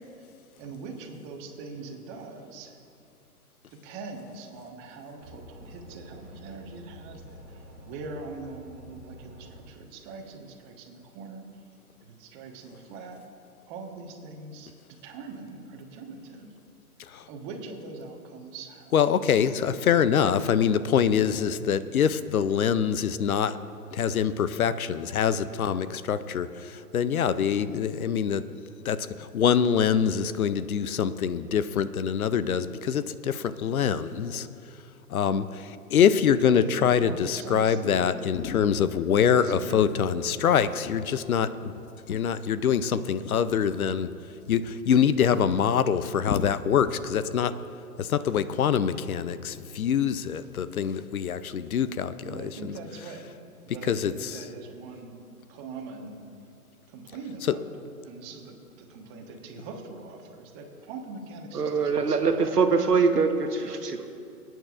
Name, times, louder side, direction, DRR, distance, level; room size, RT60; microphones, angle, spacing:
voice 1, 0.6-2.8 3.8-11.4 12.0-13.2 13.7-14.7 15.0-16.6 17.3-18.9 19.2-19.4 36.5-38.2 39.3-39.8 52.2-53.3 53.6-56.2 56.9-57.6 58.0-62.6, right 3 dB, 25° right, 2 dB, 1.3 m, -42 dB
sound 1, 5.2-9.6, equal, 10° right, 0.5 m, -48 dB
voice 2, 18.9-23.6 23.9-28.4 28.8-34.5 35.1-41.7 42.1-44.1 44.5-47.5 48.0-52.7 53.9-54.4, left 8 dB, 65° left, 14 dB, 0.6 m, -25 dB
voice 3, 61.5-64.1, right 5 dB, 85° right, 6 dB, 1.3 m, -23 dB
25.0 x 9.1 x 2.5 m, 2.5 s
figure-of-eight pair, 130°, 46 cm